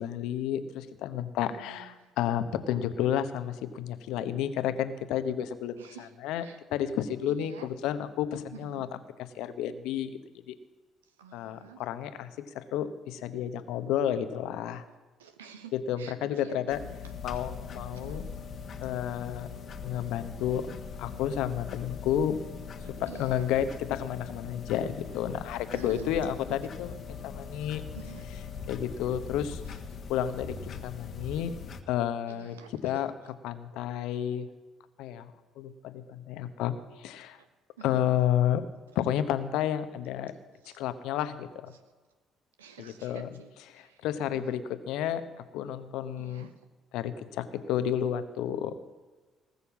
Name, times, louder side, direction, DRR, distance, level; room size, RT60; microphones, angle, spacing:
voice 1, 0.0-6.4 6.7-8.9 9.3-10.2 10.5-10.6 11.3-12.3 12.5-14.8 15.7-16.8 17.2-18.2 18.8-19.5 19.8-20.7 21.0-22.4 23.0-27.8 28.7-29.6 30.1-31.6 31.9-32.6 32.8-34.5 35.0-36.7 37.0-37.4 37.8-38.6 38.9-40.3 40.7-41.7 42.8-43.4 43.7-45.2 45.5-46.5 46.9-48.7, left 10 dB, 65° left, 11 dB, 0.9 m, -31 dB
voice 2, 1.5-2.1 5.8-6.1 6.4-6.6 7.3-7.7 8.5-8.9 11.2-11.8 15.2-17.0 17.3-17.4 17.9-18.3 22.8-23.5 25.7-26.6 27.9-28.3 32.3-32.7 37.4-37.5 37.8-38.1 40.6-40.8 42.6-44.5 46.2-46.5, right 7 dB, 80° right, 8 dB, 1.0 m, -49 dB
sound 1, 16.7-31.8, left 6 dB, 50° left, 1.3 m, -41 dB
18.5 x 6.9 x 7.2 m, 1.3 s
figure-of-eight pair, 45°, 0 cm